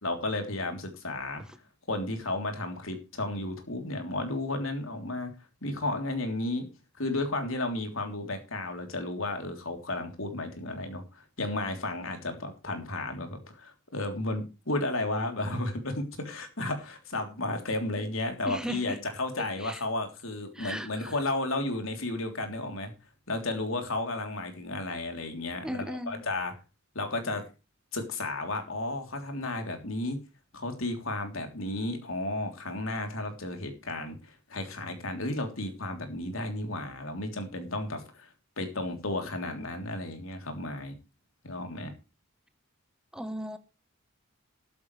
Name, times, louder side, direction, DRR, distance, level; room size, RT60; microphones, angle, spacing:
voice 1, 0.0-1.4 1.9-5.3 5.6-6.7 7.0-22.9 23.3-25.8 26.1-26.5 26.9-27.4 27.9-30.2 30.5-38.3 38.6-40.9 41.4-41.9, left 2 dB, 70° left, 5 dB, 3.4 m, -33 dB
voice 2, 18.4-19.0 19.4-19.8 20.5-21.2 25.6-26.2 43.1-43.6, equal, 5° right, 10 dB, 1.0 m, -37 dB
14.0 x 13.0 x 3.3 m, 0.30 s
head